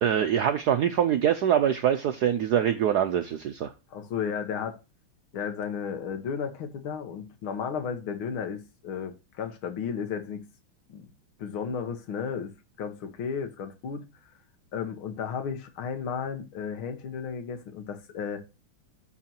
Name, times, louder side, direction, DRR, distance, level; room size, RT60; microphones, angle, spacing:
voice 1, 0.0-3.7, right 9 dB, 75° right, 0.9 m, -24 dB
voice 2, 3.9-4.8 5.3-10.4 10.9-11.1 11.4-12.5 12.8-14.1 14.7-18.4, left 7 dB, 70° left, 2.2 m, -33 dB
14.0 x 4.7 x 2.9 m
omnidirectional pair, 2.4 m